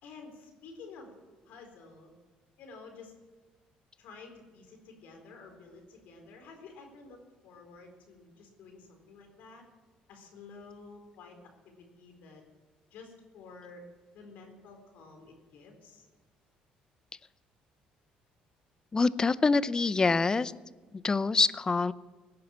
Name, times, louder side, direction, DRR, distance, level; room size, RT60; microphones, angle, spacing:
voice 1, 0.0-1.1 1.4-2.1 2.6-3.1 4.0-7.2 7.4-9.6 10.1-11.4 11.6-12.4 12.9-13.8 14.1-16.1, left 4 dB, 75° left, 3 dB, 4.2 m, -51 dB
voice 2, 18.9-20.5 20.9-21.9, left 4 dB, 25° left, 17 dB, 0.6 m, -25 dB
18.0 x 9.6 x 7.4 m, 1.3 s
cardioid pair, 95°, 3 cm